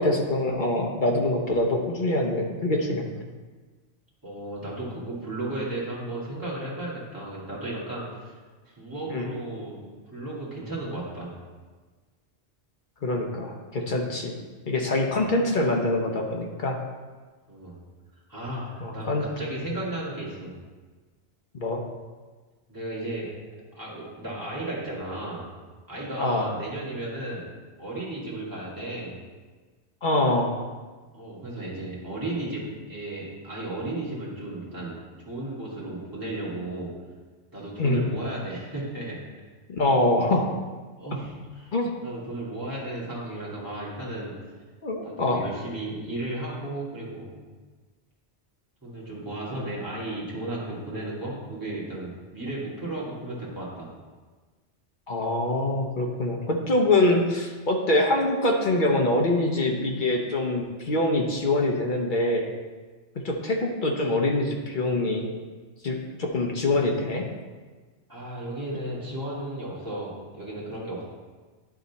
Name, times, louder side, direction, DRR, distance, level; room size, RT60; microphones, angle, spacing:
voice 1, 0.0-3.1 9.1-9.3 13.0-14.4 14.7-16.8 18.8-19.2 21.6-21.8 26.2-26.5 30.0-30.6 37.8-38.0 39.7-40.5 41.7-41.9 44.8-45.4 55.1-62.5 63.2-65.3 65.8-67.3, left 2 dB, 50° left, 1 dB, 0.8 m, -24 dB
voice 2, 4.2-8.3 8.6-9.8 10.1-11.3 15.0-15.3 17.5-17.8 18.3-20.5 22.7-23.3 23.8-25.4 25.9-27.5 27.8-29.2 31.1-35.0 35.3-36.9 37.5-39.2 41.0-41.7 42.0-44.4 45.0-47.3 48.8-53.9 68.1-71.1, right 1 dB, 15° right, -7 dB, 2.1 m, -34 dB
10.5 x 4.1 x 4.0 m, 1.4 s
omnidirectional pair, 1.2 m